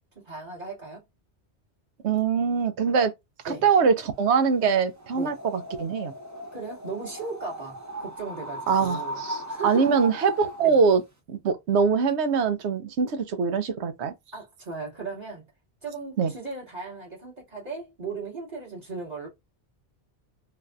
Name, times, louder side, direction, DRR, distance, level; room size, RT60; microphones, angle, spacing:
voice 1, 0.2-1.0 3.5-3.7 5.1-5.4 6.5-9.2 9.5-10.0 10.6-10.7 14.3-15.4 15.8-19.3, right 4 dB, 40° right, 2.2 m, -37 dB
voice 2, 2.0-3.1 3.4-6.1 8.7-11.0 11.3-14.1 16.2-16.3, right 5 dB, 75° right, 1.0 m, -23 dB
sound 1, 5.0-10.7, right 1 dB, 20° right, 0.7 m, -37 dB
3.9 x 2.7 x 2.3 m
omnidirectional pair, 1.1 m